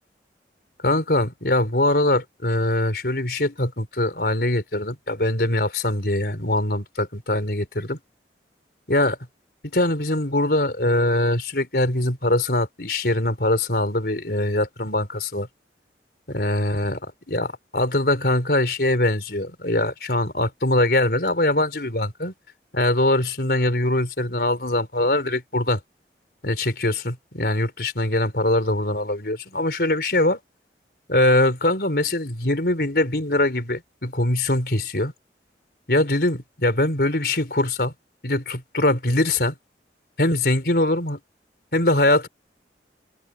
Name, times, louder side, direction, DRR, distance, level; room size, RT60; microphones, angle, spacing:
voice 1, 0.8-8.0 8.9-9.2 9.7-15.5 16.3-17.0 17.3-22.3 22.7-25.8 26.4-30.4 31.1-35.1 35.9-37.9 38.2-39.6 40.2-41.2 41.7-42.3, left 1 dB, 60° left, 4.5 m, -22 dB
head